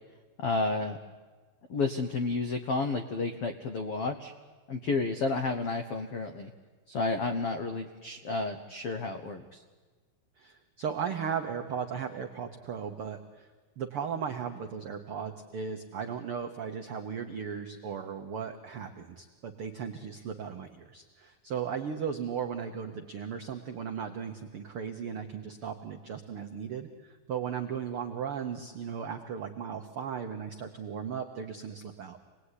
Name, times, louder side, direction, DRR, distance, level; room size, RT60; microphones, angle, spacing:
voice 1, 0.4-1.0 1.7-4.3 4.7-6.5 6.9-9.6, left 3 dB, 85° left, 7 dB, 1.3 m, -31 dB
voice 2, 10.4-13.5 13.8-32.2, right 7 dB, 85° right, 4 dB, 1.2 m, -36 dB
26.5 x 19.5 x 9.8 m, 1.4 s
omnidirectional pair, 4.3 m